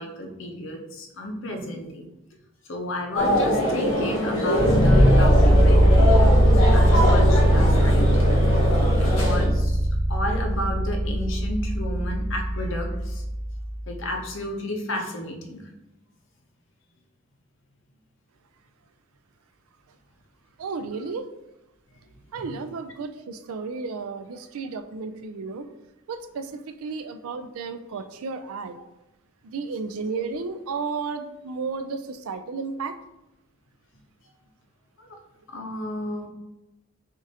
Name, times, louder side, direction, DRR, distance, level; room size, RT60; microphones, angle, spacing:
voice 1, 0.0-2.0 2.7-6.2 6.7-8.2 9.0-9.8 10.1-13.2 13.9-15.6 22.3-22.5 35.0-35.1 35.5-36.3, left 1 dB, 65° left, 3 dB, 0.7 m, -32 dB
sound 1, 3.2-9.5, equal, 85° left, 1.3 m, -23 dB
sound 2, 4.5-13.6, equal, 25° left, 0.7 m, -19 dB
voice 2, 20.6-21.3 22.3-25.7 26.1-26.5 26.8-28.8 29.4-33.0, right 4 dB, 85° right, 10 dB, 0.4 m, -33 dB
6.2 x 2.5 x 2.8 m, 0.92 s
head